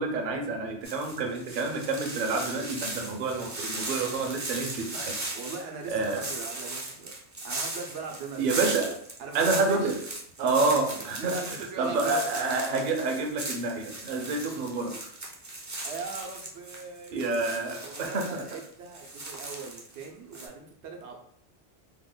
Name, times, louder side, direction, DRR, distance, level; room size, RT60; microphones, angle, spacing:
voice 1, 0.0-5.2 5.9-6.3 8.4-9.0 9.3-10.0 10.4-15.0 17.1-18.4, right 3 dB, 55° right, 2 dB, 0.7 m, -28 dB
sound 1, 0.8-20.1 20.3-20.5, right 2 dB, 30° right, 0.3 m, -38 dB
voice 2, 5.3-7.1 7.4-8.6 9.2-9.9 11.0-12.4 15.8-17.2 17.8-21.2, right 4 dB, 85° right, 2 dB, 0.9 m, -40 dB
2.9 x 2.1 x 3.8 m, 0.67 s
omnidirectional pair, 1.1 m